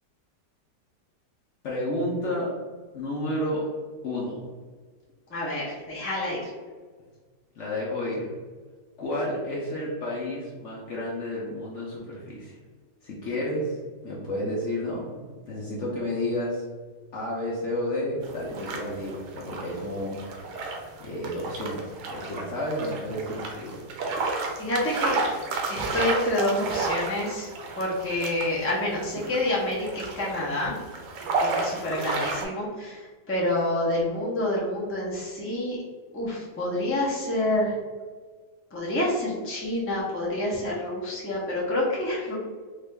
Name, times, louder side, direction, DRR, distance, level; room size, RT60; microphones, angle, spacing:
voice 1, 1.6-2.5 2.9-3.6 4.0-4.5 7.6-8.3 9.0-12.6 13.0-13.8 14.0-16.6 17.1-20.2 21.0-23.9, left 1 dB, 60° left, -5 dB, 0.8 m, -31 dB
voice 2, 5.3-6.4 24.6-25.2 25.7-27.5 27.8-30.8 31.4-35.8 36.1-37.8 38.7-42.3, left 1 dB, 15° left, -6 dB, 0.4 m, -28 dB
sound 1, 18.2-32.4, right 3 dB, 85° right, 1.3 m, -32 dB
3.8 x 2.6 x 3.3 m, 1.5 s
omnidirectional pair, 1.9 m